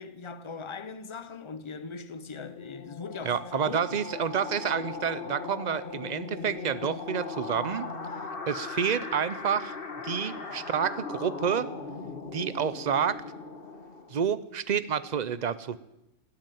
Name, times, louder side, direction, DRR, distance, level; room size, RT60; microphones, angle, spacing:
voice 1, 0.0-4.1, left 5 dB, 30° left, 0.7 m, -40 dB
sound 1, 2.0-14.4, left 4 dB, 45° left, 1.6 m, -39 dB
voice 2, 3.2-7.9 8.5-9.8 10.0-11.7 12.3-13.2 14.1-15.8, right 7 dB, 45° right, 0.6 m, -29 dB
17.5 x 9.0 x 9.2 m
omnidirectional pair, 1.4 m